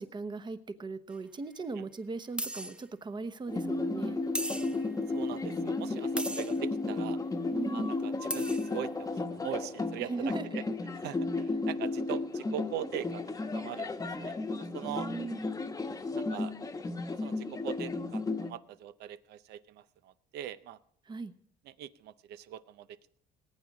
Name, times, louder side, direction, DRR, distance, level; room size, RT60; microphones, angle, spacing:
voice 1, 0.0-4.2 7.5-8.0 10.0-10.4 14.8-15.5 21.1-21.3, right 3 dB, 25° right, 11 dB, 1.0 m, -38 dB
sound 1, 1.1-1.2 2.4-2.8 4.3-4.9 6.2-6.6 8.0-8.1 8.3-8.8, right 1 dB, 5° right, 0.6 m, -37 dB
sound 2, 3.5-18.5, left 3 dB, 20° left, 1.1 m, -34 dB
voice 2, 5.1-7.2 7.7-10.1 10.5-10.6 11.0-13.9 14.2-14.3 14.7-15.1 16.1-16.5 17.2-20.8 21.6-23.2, right 11 dB, 75° right, 15 dB, 0.7 m, -41 dB
19.0 x 8.8 x 4.8 m, 0.63 s
cardioid pair, 110°, 17 cm